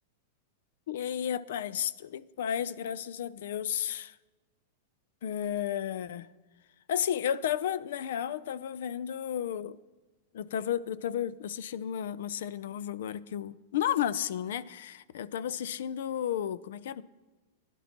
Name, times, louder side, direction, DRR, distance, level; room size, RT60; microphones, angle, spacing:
voice 1, 0.9-4.2 5.2-6.3 6.9-9.8 10.3-17.0, left 9 dB, 75° left, 0.4 m, -33 dB
16.0 x 10.5 x 2.9 m
supercardioid pair, 140°, 0 cm